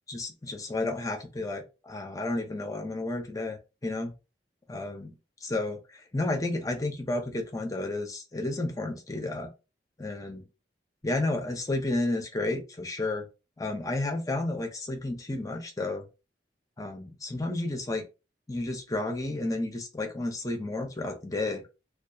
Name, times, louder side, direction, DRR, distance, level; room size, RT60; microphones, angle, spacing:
voice 1, 0.1-4.1 4.7-5.2 5.4-9.5 10.0-10.4 11.0-13.3 13.6-16.1 16.8-18.1 18.5-21.6, left 2 dB, 20° left, 3 dB, 0.5 m, -32 dB
2.7 x 2.4 x 2.2 m, 0.29 s
head